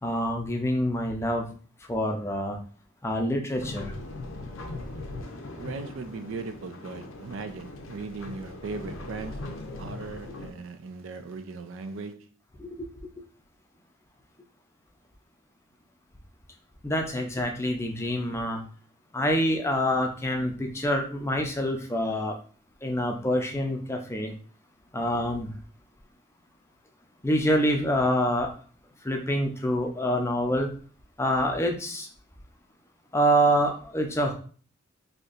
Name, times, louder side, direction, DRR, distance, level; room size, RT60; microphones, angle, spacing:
voice 1, 0.0-1.5 1.9-2.6 3.0-3.9 12.6-12.9 16.8-18.6 19.1-22.3 22.8-24.3 24.9-25.5 27.2-28.5 29.0-30.7 31.2-32.1 33.1-34.3, equal, 15° left, 0.5 m, -26 dB
sound 1, 3.5-10.5, left 2 dB, 90° left, 0.6 m, -40 dB
voice 2, 5.6-9.5 9.8-12.3, right 4 dB, 80° right, 0.4 m, -38 dB
4.1 x 2.8 x 2.4 m
head